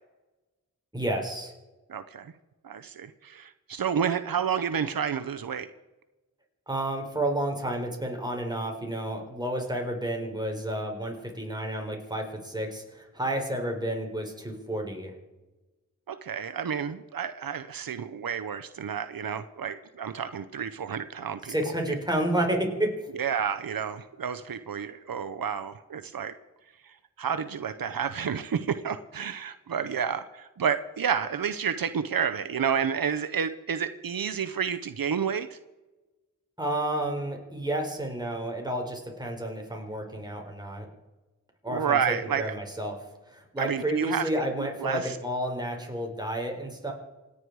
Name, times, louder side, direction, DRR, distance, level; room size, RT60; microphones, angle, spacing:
voice 1, 0.9-1.5 6.7-15.1 21.5-23.0 36.6-40.9 41.6-43.0 43.3-46.9, right 1 dB, 10° right, 1 dB, 4.2 m, -31 dB
voice 2, 1.9-2.3 2.6-5.7 16.1-21.7 23.1-26.3 26.8-35.6 41.7-42.5 43.6-44.3 44.6-45.2, right 7 dB, 85° right, 10 dB, 0.7 m, -30 dB
28.0 x 9.6 x 4.7 m, 1.1 s
wide cardioid pair, 60°, 34 cm